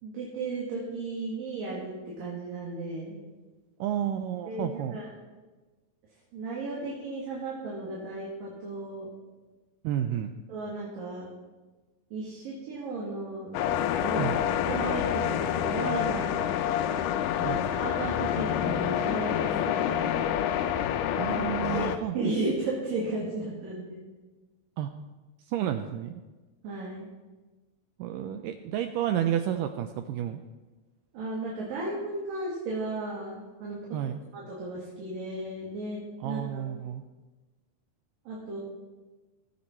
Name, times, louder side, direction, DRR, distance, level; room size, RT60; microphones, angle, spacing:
voice 1, 0.0-3.2 4.5-5.1 6.3-9.1 10.5-11.3 12.1-13.7 14.0-14.3 14.6-16.6 17.3-20.5 21.7-24.0 26.6-27.1 31.1-33.8 34.3-36.6 38.3-38.6, right 2 dB, 70° right, -5 dB, 3.7 m, -35 dB
voice 2, 3.8-5.0 9.8-10.3 14.2-14.4 17.4-17.6 21.1-22.3 24.8-24.9 25.5-26.1 28.0-30.4 33.9-34.2 36.2-37.0, right 10 dB, 85° right, 8 dB, 1.9 m, -31 dB
sound 1, 13.5-22.0, left 10 dB, 80° left, 2.1 m, -28 dB
17.5 x 8.3 x 4.4 m, 1.2 s
omnidirectional pair, 4.3 m